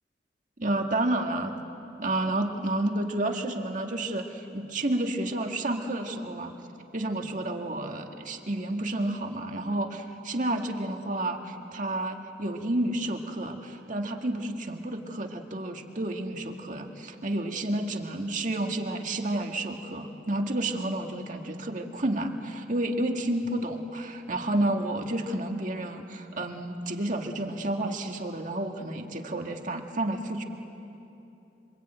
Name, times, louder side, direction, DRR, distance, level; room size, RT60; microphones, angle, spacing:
voice 1, 0.6-1.6 2.0-6.5 6.9-30.4, right 1 dB, 45° right, 3 dB, 1.9 m, -30 dB
26.0 x 25.5 x 9.1 m, 3.0 s
head